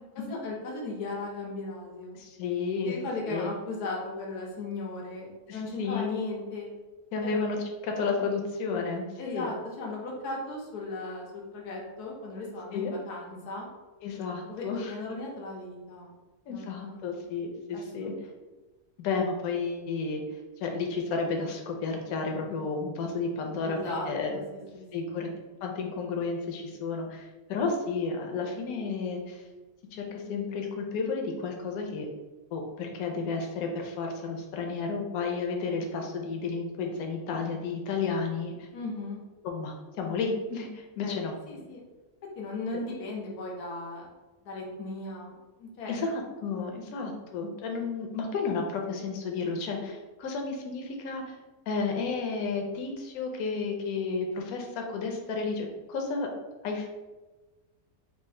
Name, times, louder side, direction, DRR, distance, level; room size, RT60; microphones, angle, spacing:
voice 1, 0.1-2.2 2.8-6.7 7.2-7.4 9.2-13.7 14.5-16.1 16.5-17.2 17.7-18.1 23.6-24.1 24.3-25.2 38.7-39.2 41.0-41.1 41.5-41.8 42.4-44.1 44.4-46.0, left 2 dB, 90° left, -2 dB, 1.4 m, -37 dB
voice 2, 2.1-3.0 3.3-3.5 5.5-6.1 7.1-7.6 7.8-9.5 12.7-12.9 14.0-14.9 16.5-18.1 19.0-20.2 20.6-23.8 24.1-24.4 24.9-25.3 25.6-29.4 29.9-32.1 32.5-38.7 39.4-41.3 41.6-41.7 42.7-42.8 45.9-51.4 51.7-56.3 56.6-56.9, left 4 dB, 70° left, 2 dB, 1.1 m, -32 dB
4.3 x 2.5 x 3.6 m, 1.2 s
omnidirectional pair, 1.6 m